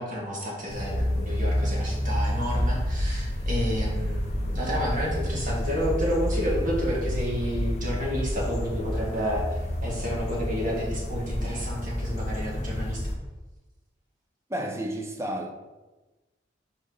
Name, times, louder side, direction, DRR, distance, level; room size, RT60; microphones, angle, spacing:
voice 1, 0.0-13.0, equal, 45° right, -4 dB, 2.0 m, -30 dB
sound 1, 0.7-13.2, equal, 40° left, 0.9 m, -30 dB
sound 2, 2.5-10.1, left 1 dB, 55° left, 1.8 m, -34 dB
voice 2, 14.5-15.5, right 1 dB, 15° right, 3 dB, 0.7 m, -31 dB
6.1 x 4.6 x 5.5 m, 1.1 s
head